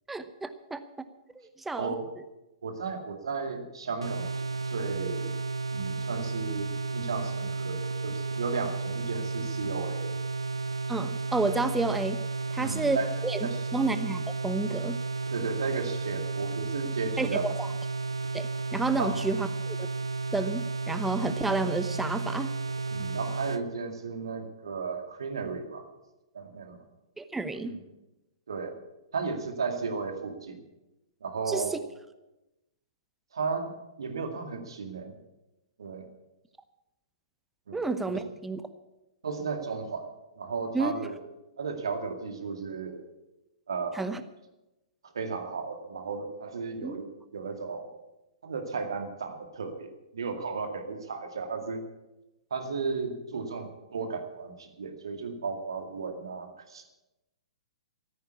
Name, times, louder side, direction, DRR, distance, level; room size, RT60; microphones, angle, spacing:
voice 1, 0.1-0.8 1.7-2.0 10.9-12.2 12.5-13.0 13.2-13.4 13.7-15.0 17.2-17.7 18.3-19.8 20.3-22.5 27.2-27.7 31.5-31.8 37.7-38.6 40.7-40.9 43.9-44.2 46.8-47.0, right 3 dB, 5° right, 11 dB, 0.9 m, -30 dB
voice 2, 1.7-2.1 2.6-5.4 5.7-10.2 12.6-13.1 13.4-13.7 15.3-17.5 18.9-19.3 22.9-25.8 26.3-26.8 27.7-27.8 28.5-28.7 29.1-30.6 31.2-31.7 33.3-35.2 35.8-36.1 37.7-37.8 38.1-38.2 39.2-40.1 40.4-41.2 41.6-43.0 43.7-44.1 45.1-47.1 47.3-47.9 48.4-51.8 52.5-56.8, right 4 dB, 60° right, 6 dB, 2.2 m, -34 dB
sound 1, 4.0-23.6, right 3 dB, 75° right, 0.6 m, -33 dB
14.5 x 9.4 x 8.3 m, 0.99 s
figure-of-eight pair, 115°, 3 cm